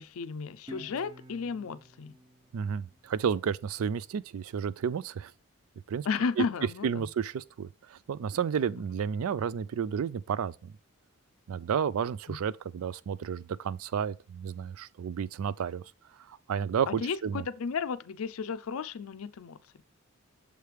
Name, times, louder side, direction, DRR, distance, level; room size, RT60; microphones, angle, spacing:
voice 1, 0.0-2.1 6.1-7.1 12.3-12.4 16.9-19.6, left 5 dB, 75° left, 0.4 m, -33 dB
Guitar, 0.7-3.9, equal, 20° right, 0.6 m, -51 dB
voice 2, 2.5-5.3 5.9-6.1 6.4-6.5 6.8-10.7 11.5-15.8 16.5-17.4, right 7 dB, 75° right, 0.3 m, -31 dB
6.7 x 3.3 x 4.6 m
head